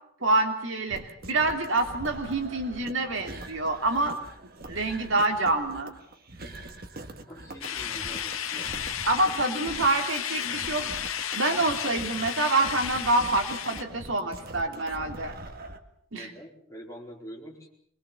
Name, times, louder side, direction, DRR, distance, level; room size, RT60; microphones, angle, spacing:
voice 1, 0.2-4.2 4.7-5.9 9.1-10.9 11.3-15.3 16.1-16.3, right 2 dB, 65° right, 4 dB, 3.1 m, -26 dB
sound 1, 0.9-15.8, right 2 dB, 50° right, 1.9 m, -43 dB
voice 2, 7.3-8.7 16.1-17.7, equal, 15° left, -1 dB, 4.6 m, -45 dB
sound 2, 7.6-13.8, left 9 dB, 85° left, 1.6 m, -33 dB
24.5 x 21.0 x 7.2 m, 0.67 s
head